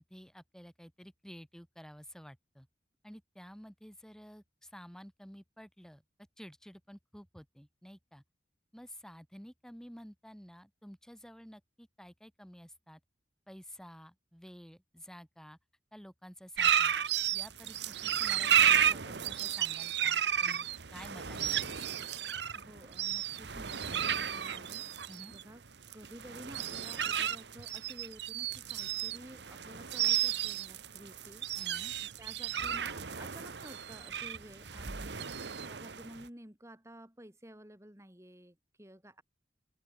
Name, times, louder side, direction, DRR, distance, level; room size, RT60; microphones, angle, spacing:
voice 1, 0.0-2.7 3.0-6.0 6.4-8.2 8.7-13.0 13.5-15.6 15.9-16.9 17.3-21.9 25.1-25.4 31.6-31.9, equal, 5° left, 3.5 m, -51 dB
sound 1, 16.6-36.2, right 9 dB, 70° right, 1.3 m, -32 dB
voice 2, 22.5-25.6 25.9-31.7 32.0-39.2, right 1 dB, 15° right, 3.0 m, -52 dB
head